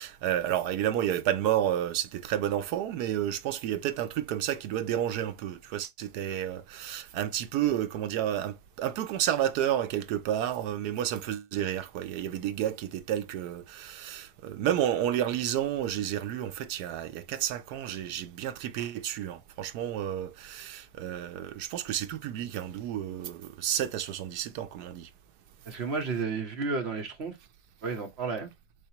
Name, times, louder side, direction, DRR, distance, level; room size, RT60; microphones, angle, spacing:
voice 1, 0.0-25.1, right 11 dB, 80° right, 1.2 m, -31 dB
voice 2, 25.6-27.4 27.8-28.5, right 4 dB, 45° right, 1.3 m, -32 dB
4.9 x 3.4 x 2.8 m
omnidirectional pair, 1.7 m